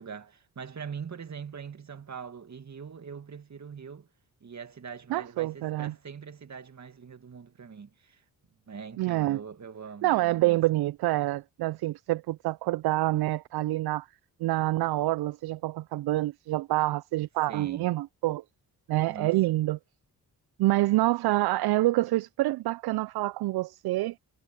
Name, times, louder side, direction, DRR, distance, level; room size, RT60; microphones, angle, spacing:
voice 1, 0.0-4.1 4.4-8.2 8.7-10.6 17.5-17.9 19.1-19.4, right 6 dB, 45° right, 2.2 m, -42 dB
voice 2, 5.1-5.9 9.0-9.4 10.0-14.1 14.4-18.4 18.9-19.8 20.6-24.1, right 17 dB, 75° right, 0.5 m, -27 dB
cardioid pair, 60°, 39 cm